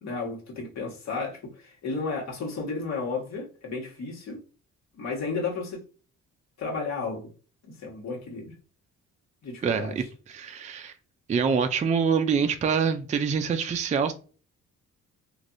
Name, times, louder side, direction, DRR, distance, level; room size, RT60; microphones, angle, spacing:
voice 1, 0.0-4.4 4.9-5.8 6.6-7.3 7.7-8.5 9.4-9.9, left 4 dB, 60° left, 1.4 m, -33 dB
voice 2, 9.6-10.9 11.3-14.1, right 6 dB, 25° right, 0.4 m, -25 dB
3.3 x 2.6 x 2.5 m
cardioid pair, 90°, 30 cm